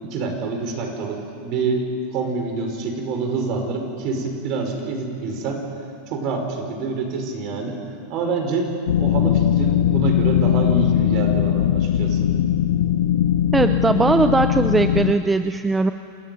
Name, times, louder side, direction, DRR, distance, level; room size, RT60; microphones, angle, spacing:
voice 1, 0.0-5.7 6.1-7.8 8.1-12.3, right 4 dB, 50° right, 4 dB, 5.4 m, -26 dB
sound 1, 8.9-15.1, left 10 dB, 80° left, 0.8 m, -19 dB
voice 2, 13.5-15.9, right 3 dB, 10° right, 9 dB, 0.7 m, -19 dB
27.5 x 14.5 x 9.4 m, 2.3 s
hypercardioid pair, 120°, 0 cm